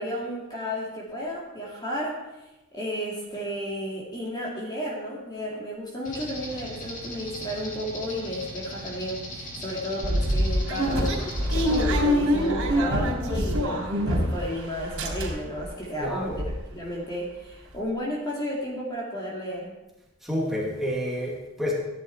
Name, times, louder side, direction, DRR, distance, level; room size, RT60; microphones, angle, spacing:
voice 1, 0.0-2.1 2.7-19.7, equal, 20° left, -4 dB, 2.2 m, -33 dB
sound 1, 6.0-11.8, equal, 35° left, 2.4 m, -39 dB
sound 2, 10.0-14.5 14.8-15.6 16.0-16.1 16.3-16.5, equal, 75° right, 3.3 m, -25 dB
voice 2, 16.0-16.4 20.2-21.7, equal, ahead, -4 dB, 2.6 m, -29 dB
14.5 x 10.5 x 4.5 m, 1.0 s
head